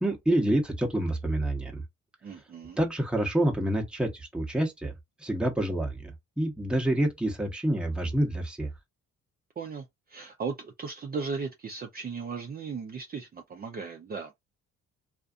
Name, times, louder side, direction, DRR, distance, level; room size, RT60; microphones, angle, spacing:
voice 1, 0.0-1.8 2.8-4.9 5.2-8.7, right 1 dB, 5° right, 0.8 m, -27 dB
voice 2, 2.2-2.8 9.6-14.4, right 5 dB, 30° right, 0.5 m, -37 dB
2.5 x 2.4 x 2.3 m
cardioid pair, 90°, 30 cm